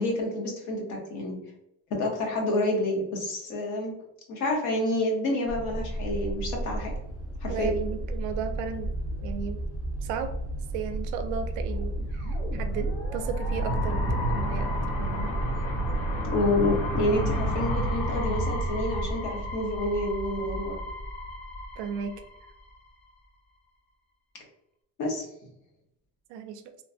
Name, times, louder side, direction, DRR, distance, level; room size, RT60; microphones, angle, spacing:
voice 1, 0.0-1.4 1.9-4.0 4.3-6.9 7.4-7.7 16.3-20.8 25.0-25.3, left 1 dB, 65° left, 0 dB, 1.0 m, -28 dB
sound 1, 5.5-19.1, right 1 dB, 5° right, 0.7 m, -32 dB
voice 2, 7.5-9.6 10.0-10.4 10.7-15.3 21.8-22.2 26.3-26.6, right 7 dB, 65° right, 8 dB, 0.4 m, -35 dB
sound 2, 11.8-22.8, equal, 85° left, 0.8 m, -32 dB
3.0 x 2.1 x 2.6 m, 0.80 s
cardioid pair, 165°, 33 cm